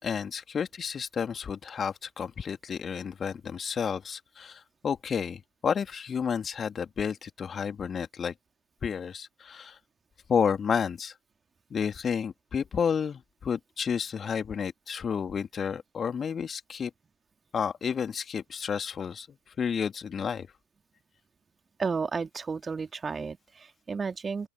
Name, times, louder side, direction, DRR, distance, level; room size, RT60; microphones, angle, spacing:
voice 1, 0.0-8.3 8.8-9.8 10.3-11.1 11.7-16.9 17.5-19.3 19.6-20.5, left 7 dB, 20° left, 3.0 m, -31 dB
voice 2, 21.8-24.5, right 5 dB, 15° right, 2.8 m, -32 dB
open air
figure-of-eight pair, 90°, 0 cm